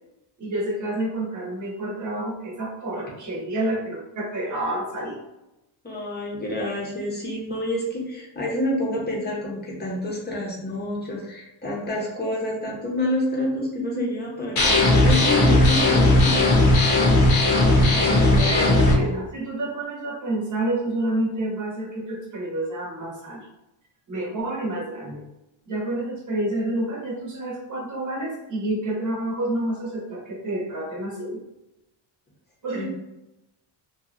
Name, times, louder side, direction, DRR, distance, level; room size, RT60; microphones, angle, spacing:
voice 1, 0.4-5.2 18.5-23.5 24.1-25.3 25.7-31.4 32.6-32.9, right 1 dB, 40° right, -2 dB, 0.9 m, -29 dB
voice 2, 5.8-16.7 17.9-19.1 32.7-32.9, left 1 dB, 20° left, -3 dB, 0.7 m, -28 dB
sound 1, 14.6-18.9, left 2 dB, 75° left, 0.9 m, -17 dB
2.9 x 2.3 x 2.4 m, 0.91 s
cardioid pair, 120°, 47 cm